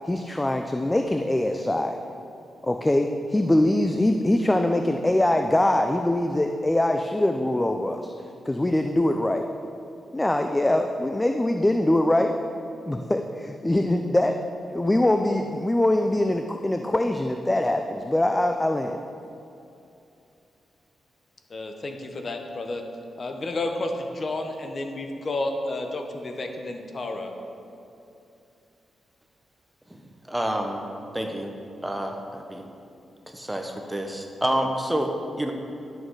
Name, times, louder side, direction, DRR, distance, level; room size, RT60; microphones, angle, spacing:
voice 1, 0.1-2.0 2.6-8.1 8.5-9.5 10.1-12.4 12.9-14.3 14.7-19.0, left 1 dB, 15° left, 5 dB, 0.4 m, -23 dB
voice 2, 21.5-22.8 23.2-27.3, left 2 dB, 45° left, 4 dB, 1.0 m, -31 dB
voice 3, 30.3-30.8 31.1-31.5 31.8-32.6 33.3-35.5, right 1 dB, 10° right, 3 dB, 1.0 m, -28 dB
11.0 x 6.5 x 4.7 m, 2.7 s
cardioid pair, 95°, 0 cm